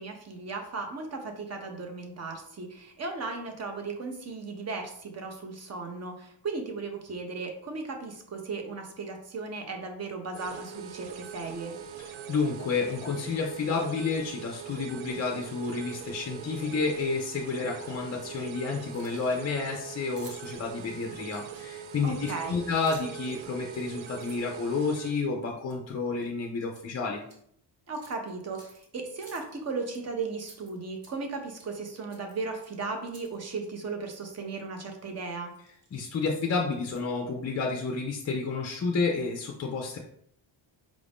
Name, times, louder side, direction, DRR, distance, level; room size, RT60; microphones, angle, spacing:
voice 1, 0.0-11.7 22.0-22.6 27.9-35.5, right 4 dB, 35° right, 4 dB, 0.6 m, -36 dB
sound 1, 10.3-25.2, right 8 dB, 85° right, 0.5 m, -42 dB
voice 2, 12.3-27.2 35.9-40.0, left 4 dB, 35° left, 1 dB, 0.4 m, -30 dB
Keys jangling, 18.9-19.5 20.2-21.8 22.5-23.3 23.7-25.2 25.7-25.9 26.2-26.9 27.2-27.4 27.9-28.9 29.2-30.0 30.4-31.3 31.6-31.8 32.1-33.4 33.6-33.7 34.1-34.3 34.9-35.1 35.5-37.2, right 3 dB, 50° right, 1.0 m, -54 dB
4.9 x 2.5 x 3.4 m, 0.68 s
wide cardioid pair, 175°, 46 cm